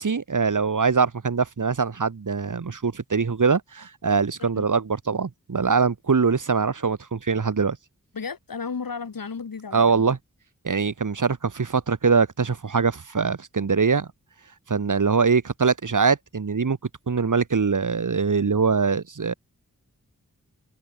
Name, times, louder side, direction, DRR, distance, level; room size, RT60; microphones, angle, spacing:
voice 1, 0.0-7.8 9.7-10.2 10.6-14.1 14.7-16.8 17.1-19.3, right 5 dB, 65° right, 2.2 m, -23 dB
voice 2, 8.1-10.1, left 5 dB, 85° left, 3.8 m, -34 dB
wide cardioid pair, 75°, 33 cm